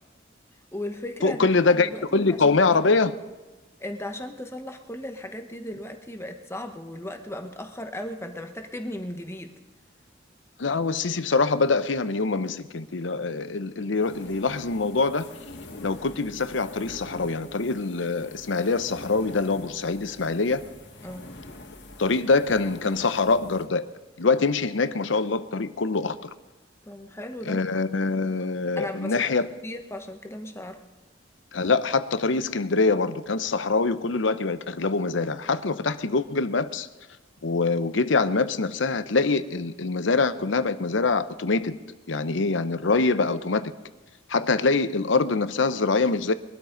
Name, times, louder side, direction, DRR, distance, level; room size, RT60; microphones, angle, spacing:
voice 1, 0.7-1.6 1.8-2.6 3.8-9.5 21.0-21.3 26.9-27.6 28.8-29.2 29.6-30.8, left 1 dB, 15° left, 1.1 m, -36 dB
voice 2, 1.2-3.2 10.6-15.3 15.8-20.6 22.0-23.8 24.2-26.3 27.4-29.5 31.5-36.9 37.4-41.8 42.1-43.7 44.3-46.3, left 3 dB, 80° left, 0.8 m, -24 dB
sound 1, 14.0-23.7, left 2 dB, 65° left, 1.9 m, -45 dB
22.5 x 13.0 x 4.0 m
head